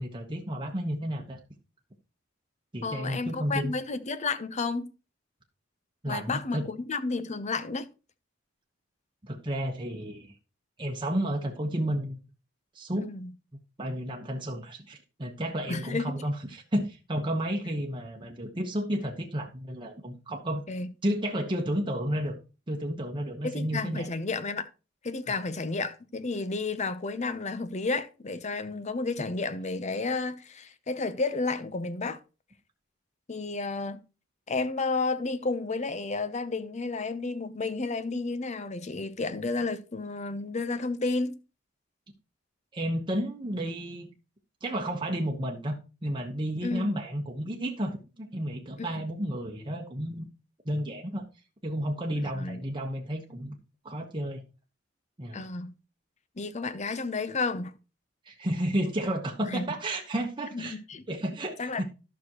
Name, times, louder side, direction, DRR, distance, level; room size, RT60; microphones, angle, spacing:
voice 1, 0.0-1.4 2.7-3.7 6.0-6.7 9.2-10.3 10.8-12.2 12.7-13.0 13.8-20.6 21.0-22.4 22.7-24.1 25.3-25.4 42.7-44.1 44.6-50.3 50.6-51.2 51.6-53.6 53.8-54.4 55.2-55.4 58.3-60.8 61.1-61.9, right 1 dB, 25° right, 1.1 m, -32 dB
voice 2, 2.8-4.9 6.1-7.9 13.0-13.3 15.7-16.1 20.7-20.9 23.4-24.7 25.0-32.2 33.3-34.0 34.5-41.4 46.6-46.9 48.8-49.0 52.2-52.6 55.3-55.7 56.4-57.7 59.4-59.6 60.5-61.0 61.6-61.8, left 3 dB, 35° left, 0.7 m, -31 dB
12.0 x 6.1 x 3.0 m
head